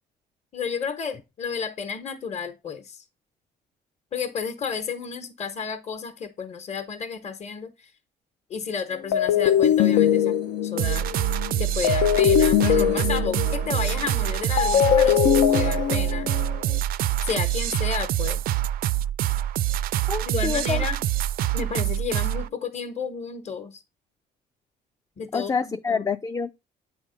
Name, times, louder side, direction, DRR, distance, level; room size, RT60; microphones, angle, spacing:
voice 1, 0.5-3.0 4.1-7.9 8.5-10.3 10.6-11.1 11.6-16.3 17.2-18.4 20.2-21.0 21.5-23.8 25.2-26.1, left 6 dB, 40° left, 1.2 m, -32 dB
sound 1, 9.1-16.8, left 10 dB, 85° left, 0.7 m, -22 dB
sound 2, 10.8-22.5, right 13 dB, 60° right, 0.4 m, -26 dB
voice 2, 20.1-20.8 25.3-26.5, left 5 dB, 20° left, 0.4 m, -27 dB
8.6 x 3.5 x 5.0 m
cardioid pair, 110°, 17 cm